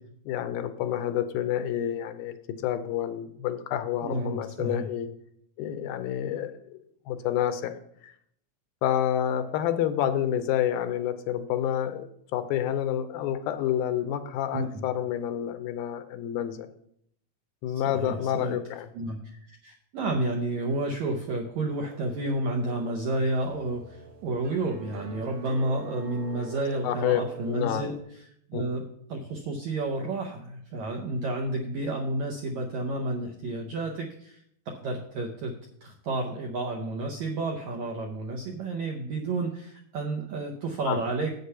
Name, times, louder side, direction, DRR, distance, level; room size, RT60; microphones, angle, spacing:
voice 1, 0.3-2.3 2.6-5.1 5.6-6.8 7.1-7.7 8.0-8.1 8.8-16.7 17.6-18.9 26.8-27.8 28.5-28.6 40.9-41.0, left 10 dB, 80° left, 9 dB, 2.4 m, -29 dB
voice 2, 4.0-4.9 14.5-14.8 17.7-18.6 18.9-28.2 28.5-35.5 35.8-41.3, right 2 dB, 80° right, 1 dB, 1.6 m, -31 dB
sound 1, 21.8-28.0, right 5 dB, 65° right, 1.5 m, -44 dB
8.3 x 6.7 x 5.5 m, 0.71 s
omnidirectional pair, 4.3 m